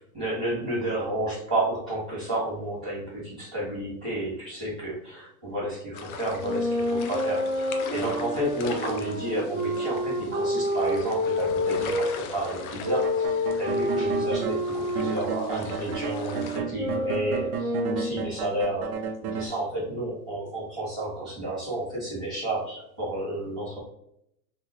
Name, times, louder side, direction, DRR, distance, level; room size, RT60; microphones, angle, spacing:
voice 1, 0.1-23.8, right 1 dB, 5° right, -17 dB, 0.3 m, -31 dB
sound 1, 5.9-16.6, left 4 dB, 60° left, 0.7 m, -40 dB
sound 2, 6.3-12.1 12.8-18.3, left 1 dB, 25° right, 1.3 m, -29 dB
sound 3, 13.0-14.6 15.0-19.5, right 6 dB, 60° right, 0.8 m, -33 dB
3.6 x 2.9 x 3.5 m, 0.74 s
supercardioid pair, 170°, 50 cm